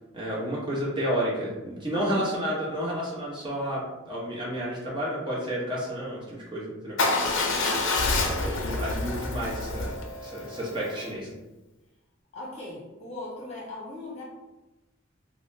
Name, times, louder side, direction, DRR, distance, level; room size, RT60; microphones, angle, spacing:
voice 1, 0.1-7.0 8.4-11.3, equal, 25° right, -6 dB, 0.8 m, -31 dB
voice 2, 1.9-2.3 7.3-7.8 12.3-14.2, left 2 dB, 30° left, -6 dB, 1.2 m, -39 dB
Motorcycle / Engine starting / Idling, 7.0-11.1, left 3 dB, 70° left, 0.4 m, -28 dB
2.9 x 2.0 x 3.2 m, 1.1 s
head